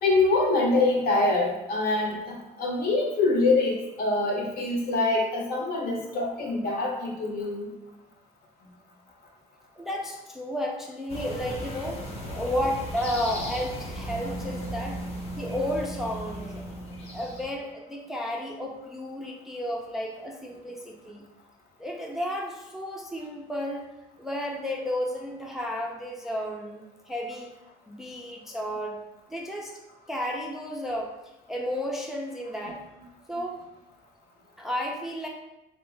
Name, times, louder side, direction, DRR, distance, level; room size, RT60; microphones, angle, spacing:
voice 1, 0.0-7.7, left 2 dB, 65° left, -1 dB, 0.8 m, -25 dB
voice 2, 9.8-12.0 12.3-15.0 15.3-16.6 17.1-21.2 21.8-23.9 24.2-27.5 27.9-29.0 29.3-29.7 30.1-31.1 31.5-32.8 33.3-33.6 34.6-35.3, equal, ahead, -1 dB, 0.4 m, -32 dB
sound 1, 11.1-17.4, equal, 40° left, 0.8 m, -36 dB
3.2 x 2.2 x 3.1 m, 0.96 s
cardioid pair, 110°, 17 cm